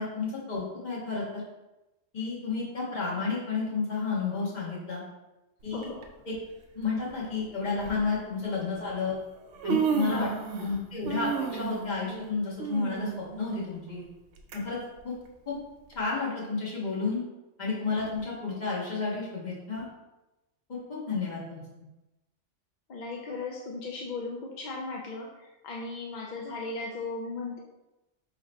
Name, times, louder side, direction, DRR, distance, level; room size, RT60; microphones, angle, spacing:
voice 1, 0.0-1.4 2.1-5.0 5.6-5.9 6.3-6.4 6.7-9.2 9.6-10.3 10.6-14.0 14.5-14.8 15.0-15.1 15.5-15.6 15.9-17.2 17.6-19.9 20.9-21.6, left 4 dB, 35° left, -7 dB, 1.5 m, -31 dB
voice 2, 5.7-6.0 10.1-10.3 22.9-27.6, left 3 dB, 60° left, -1 dB, 0.5 m, -37 dB
Human voice, 5.8-6.0 7.1-7.2 7.8-8.0 9.0-9.1 9.4-10.8 11.0-14.6 15.0-15.1 15.9-16.0, right 6 dB, 80° right, 0.9 m, -32 dB
3.9 x 2.8 x 4.4 m, 1.0 s
omnidirectional pair, 1.3 m